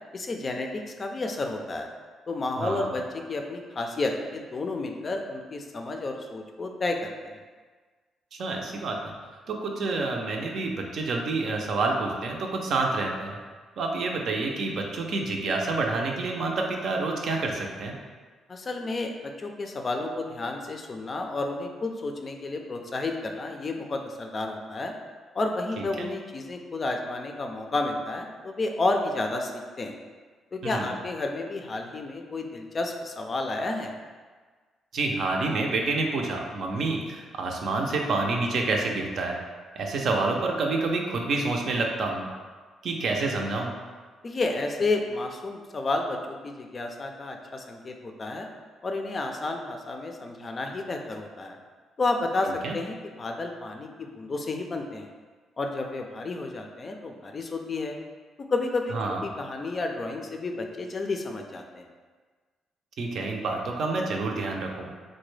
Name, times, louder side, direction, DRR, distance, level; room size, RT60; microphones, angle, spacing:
voice 1, 0.1-1.9 2.3-3.0 3.3-7.4 18.5-24.9 25.3-30.0 30.5-33.9 44.2-48.5 48.8-51.6 52.0-55.1 55.6-58.0 58.5-58.9 59.2-61.9, left 2 dB, 35° left, 3 dB, 0.4 m, -31 dB
voice 2, 2.6-2.9 8.3-9.1 9.5-13.4 13.8-17.9 25.8-26.1 30.6-30.9 34.9-39.4 39.8-42.3 42.8-43.7 52.6-52.7 58.9-59.2 63.0-64.9, right 3 dB, 65° right, 1 dB, 0.5 m, -28 dB
3.8 x 2.1 x 3.2 m, 1.5 s
cardioid pair, 90°, 0 cm